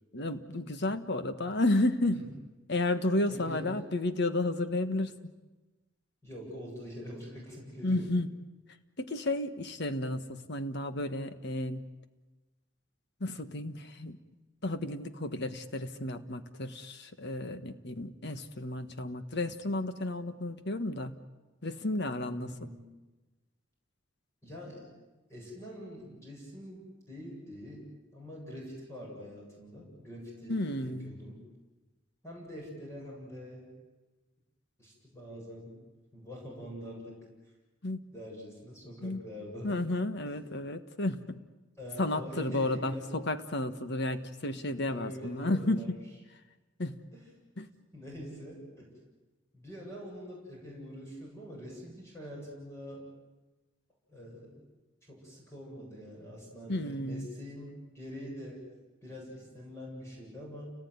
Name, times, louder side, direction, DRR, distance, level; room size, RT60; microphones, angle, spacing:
voice 1, 0.1-2.2 2.7-5.1 7.8-8.3 9.0-11.8 13.2-14.2 14.6-21.2 21.6-22.7 30.5-31.2 37.8-38.0 39.0-39.2 39.6-41.4 42.0-45.8 46.8-47.0 47.6-47.7 56.7-57.3, left 2 dB, 60° left, 9 dB, 1.5 m, -32 dB
voice 2, 3.3-3.9 6.2-8.1 22.4-22.8 24.4-24.8 25.3-31.4 32.2-33.7 34.8-35.8 36.1-37.2 38.1-39.8 41.8-43.1 44.9-45.9 47.1-47.2 47.9-48.9 49.5-53.0 54.1-54.6 55.1-58.6 59.0-60.7, equal, 15° left, -3 dB, 7.9 m, -45 dB
29.5 x 19.0 x 9.6 m, 1.2 s
head